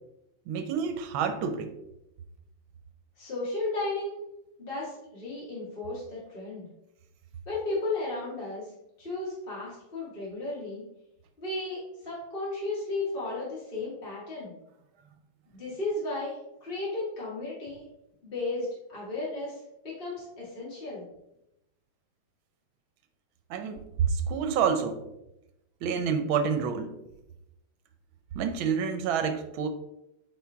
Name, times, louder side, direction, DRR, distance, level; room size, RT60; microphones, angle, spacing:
voice 1, 0.5-1.7 23.5-25.0 25.8-27.0 28.3-29.7, right 6 dB, 75° right, 8 dB, 1.5 m, -28 dB
voice 2, 3.2-4.2 4.6-6.7 7.5-8.7 9.0-10.8 11.4-14.5 15.5-17.8 18.2-21.0, left 2 dB, 25° left, -7 dB, 2.0 m, -34 dB
8.6 x 4.5 x 3.5 m, 0.87 s
omnidirectional pair, 2.3 m